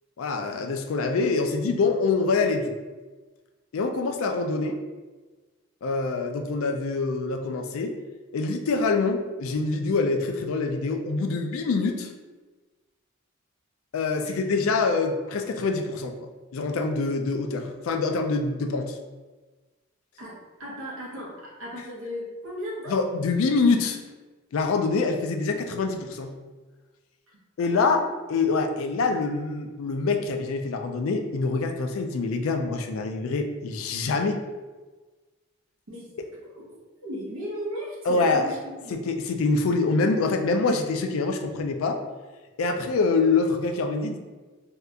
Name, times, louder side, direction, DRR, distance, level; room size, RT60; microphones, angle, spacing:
voice 1, 0.2-2.7 3.7-4.8 5.8-7.9 8.3-12.1 13.9-19.0 22.9-24.0 24.5-26.3 27.6-28.0 28.3-34.4 38.1-38.6 38.9-42.0 42.6-44.2, left 3 dB, 75° left, 5 dB, 0.4 m, -25 dB
voice 2, 20.6-22.9 27.7-28.0 35.9-36.1 36.5-36.6 37.0-38.6 38.8-39.0, equal, 75° right, -5 dB, 0.9 m, -36 dB
2.7 x 2.4 x 3.4 m, 1.3 s
head